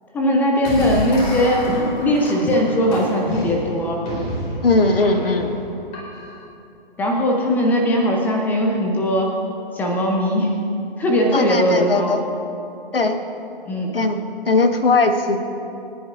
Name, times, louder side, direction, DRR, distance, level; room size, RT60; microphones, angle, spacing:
voice 1, 0.1-4.0 7.0-9.3 9.7-10.5 11.0-12.1 13.7-13.9, equal, 5° left, 0 dB, 0.5 m, -19 dB
sound 1, 0.6-6.4, equal, 25° left, 3.4 m, -29 dB
voice 2, 4.6-5.6 11.3-12.2 12.9-13.2 13.9-14.2 14.5-15.4, left 3 dB, 70° left, 7 dB, 1.3 m, -18 dB
26.0 x 10.5 x 2.4 m, 2.7 s
figure-of-eight pair, 130°, 29 cm